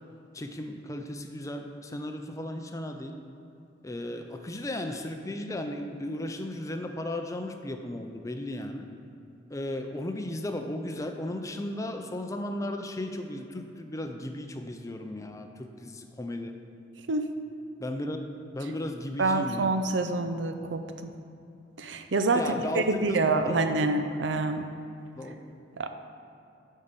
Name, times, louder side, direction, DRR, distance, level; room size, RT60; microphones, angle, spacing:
voice 1, 0.3-3.2 3.8-8.9 9.5-16.6 17.8-18.2 18.5-19.7 22.3-23.7 25.1-25.4, left 1 dB, 15° left, 5 dB, 0.5 m, -35 dB
voice 2, 19.2-21.1 21.8-24.6 25.8-25.9, right 3 dB, 75° right, 7 dB, 0.6 m, -27 dB
7.0 x 5.5 x 6.7 m, 2.7 s
head